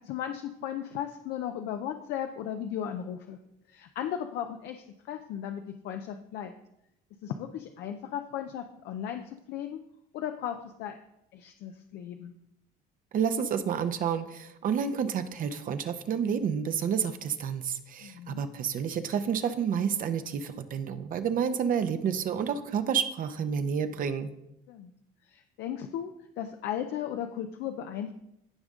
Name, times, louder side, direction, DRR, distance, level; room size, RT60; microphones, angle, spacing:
voice 1, 0.0-3.4 3.7-6.5 7.2-9.8 10.1-11.0 11.3-12.3 18.0-18.4 24.7-24.9 25.3-28.1, left 9 dB, 80° left, 6 dB, 0.6 m, -36 dB
voice 2, 13.1-24.3, right 7 dB, 55° right, 9 dB, 0.8 m, -29 dB
15.5 x 5.1 x 3.7 m, 0.82 s
cardioid pair, 110°, 17 cm